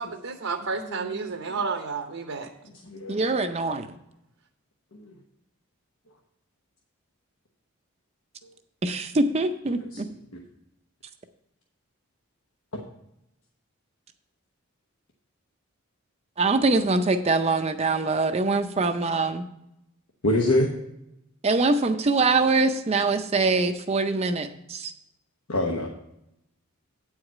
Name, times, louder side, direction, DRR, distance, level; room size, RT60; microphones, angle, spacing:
voice 1, 0.0-2.5, right 4 dB, 65° right, 4 dB, 0.7 m, -31 dB
voice 2, 0.7-1.6 2.8-3.2 4.9-5.1 9.8-10.1 20.2-20.7 25.5-25.9, left 1 dB, 80° left, 0 dB, 1.0 m, -26 dB
voice 3, 3.1-3.9 8.8-10.0 16.4-19.4 21.4-24.9, right 3 dB, 30° right, 7 dB, 0.5 m, -23 dB
8.8 x 4.8 x 7.2 m, 0.84 s
head